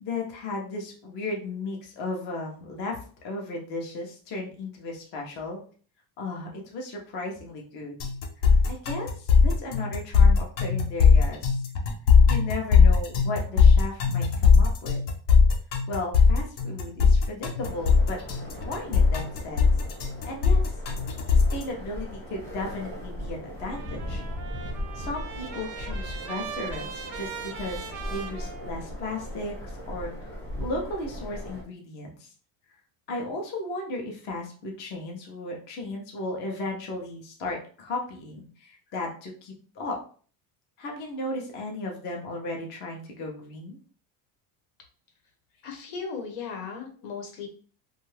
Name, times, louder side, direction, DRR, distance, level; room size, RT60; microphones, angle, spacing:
voice 1, 0.0-3.0 3.2-5.6 6.2-7.9 8.5-11.5 12.3-15.0 15.9-18.2 18.6-19.7 20.2-20.6 21.3-24.2 24.9-29.6 29.9-32.3 33.1-40.0 40.8-43.8, left 2 dB, 25° left, 0 dB, 0.3 m, -35 dB
sound 1, 8.0-21.6, left 5 dB, 60° left, 0.7 m, -19 dB
sound 2, 17.6-31.6, equal, 5° left, 0.8 m, -38 dB
Trumpet, 23.6-29.2, right 6 dB, 45° right, 0.5 m, -40 dB
voice 2, 45.6-47.5, left 5 dB, 85° left, 3 dB, 1.0 m, -36 dB
2.6 x 2.2 x 3.1 m, 0.42 s
cardioid pair, 175°, 46 cm